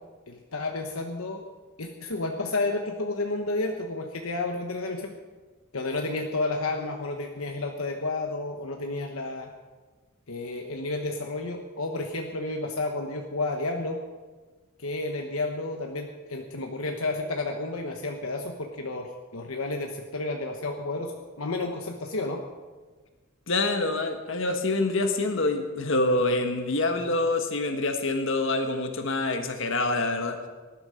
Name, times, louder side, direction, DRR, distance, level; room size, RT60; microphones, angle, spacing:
voice 1, 0.3-1.4 1.8-5.1 5.7-9.5 10.3-14.0 14.8-22.4, left 2 dB, 80° left, 3 dB, 1.3 m, -31 dB
voice 2, 23.5-30.4, left 2 dB, 60° left, 6 dB, 1.6 m, -26 dB
18.5 x 12.0 x 5.2 m, 1.3 s
head